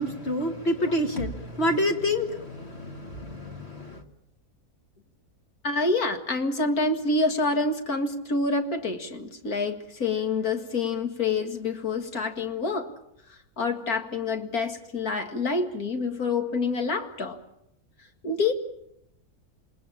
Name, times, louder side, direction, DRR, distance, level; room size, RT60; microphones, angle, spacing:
voice 1, 0.0-4.0, left 1 dB, 45° left, 4 dB, 1.9 m, -28 dB
voice 2, 5.6-12.9 13.6-17.4 18.2-18.5, left 3 dB, 75° left, 5 dB, 2.4 m, -27 dB
28.5 x 20.0 x 7.3 m, 0.79 s
omnidirectional pair, 1.6 m